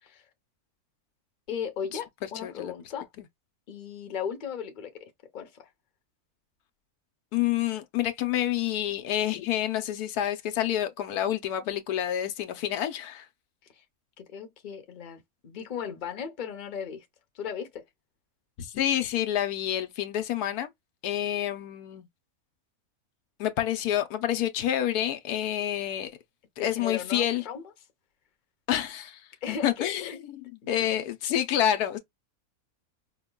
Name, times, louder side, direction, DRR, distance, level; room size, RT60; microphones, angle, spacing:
voice 1, 1.5-3.1 3.7-5.7 13.7-13.8 14.2-17.1 17.3-17.8 26.6-27.7 29.4-30.2 30.6-30.9, left 7 dB, 40° left, 0.8 m, -37 dB
voice 2, 2.4-2.7 7.3-13.2 18.6-20.7 21.0-22.1 23.4-26.1 26.6-27.4 28.7-29.2 29.5-32.0, left 11 dB, 85° left, 1.2 m, -28 dB
5.0 x 2.2 x 2.2 m
omnidirectional pair, 1.6 m